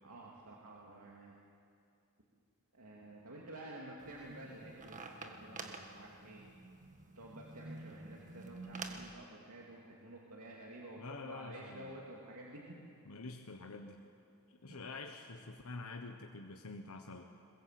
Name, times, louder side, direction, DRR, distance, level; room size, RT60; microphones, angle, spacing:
voice 1, 0.0-1.4 2.7-6.4 7.2-12.7 14.7-15.0, right 1 dB, 85° right, -3 dB, 2.6 m, -51 dB
sound 1, 4.0-9.1, right 3 dB, 35° right, 1.6 m, -49 dB
voice 2, 11.0-12.0 13.0-14.0 14.5-17.3, left 3 dB, 75° left, 3 dB, 1.2 m, -47 dB
22.0 x 21.5 x 7.7 m, 2.4 s
head